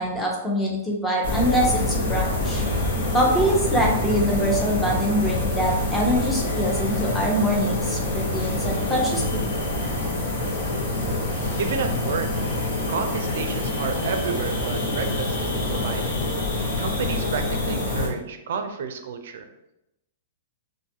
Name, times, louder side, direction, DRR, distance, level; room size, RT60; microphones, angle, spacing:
voice 1, 0.0-2.6 3.1-9.4, equal, 5° left, -2 dB, 0.6 m, -24 dB
sound 1, 1.2-18.1, left 2 dB, 70° left, 1.1 m, -26 dB
voice 2, 11.6-16.2 16.6-19.5, right 6 dB, 65° right, 7 dB, 0.4 m, -31 dB
2.5 x 2.3 x 2.8 m, 0.88 s
hypercardioid pair, 155°, 0 cm